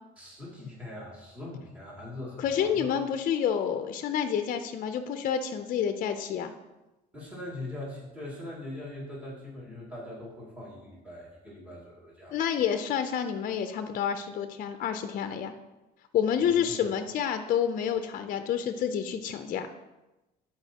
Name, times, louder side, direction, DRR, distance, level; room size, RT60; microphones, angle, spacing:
voice 1, 0.2-2.9 7.1-12.3 16.4-16.8, left 2 dB, 10° right, -6 dB, 2.4 m, -41 dB
voice 2, 2.4-6.5 12.3-15.5 16.1-19.7, left 8 dB, 55° left, 8 dB, 0.5 m, -29 dB
11.5 x 4.7 x 2.8 m, 1.0 s
cardioid pair, 110°, 17 cm